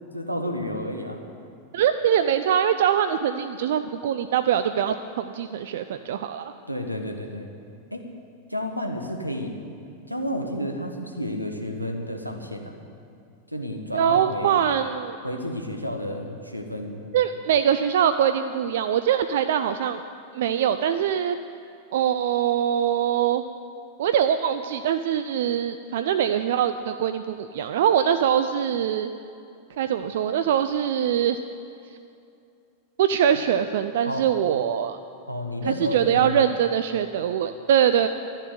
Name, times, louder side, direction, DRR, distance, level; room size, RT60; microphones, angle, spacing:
voice 1, 0.1-1.2 6.7-7.5 7.9-8.1 8.5-9.6 10.1-12.7 13.5-14.6 15.2-17.0 34.0-34.3 35.3-36.4, equal, 90° right, 4 dB, 1.3 m, -31 dB
voice 2, 1.7-6.5 13.9-15.2 17.1-20.0 20.3-21.4 21.9-23.4 24.0-29.1 29.8-31.4 33.0-35.0 35.7-38.1, right 9 dB, 55° right, 10 dB, 0.4 m, -23 dB
12.5 x 7.3 x 9.4 m, 2.6 s
figure-of-eight pair, 90°, 0 cm